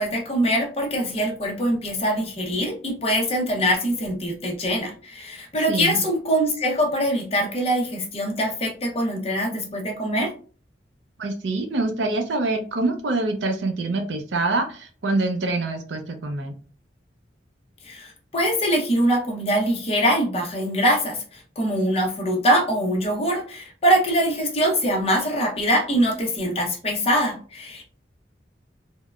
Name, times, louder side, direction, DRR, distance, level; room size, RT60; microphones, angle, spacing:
voice 1, 0.0-10.3 17.8-27.8, equal, 30° left, 1 dB, 0.7 m, -23 dB
voice 2, 5.7-6.0 11.2-16.5, right 2 dB, 80° right, 4 dB, 0.5 m, -25 dB
3.5 x 2.1 x 2.3 m, 0.39 s
head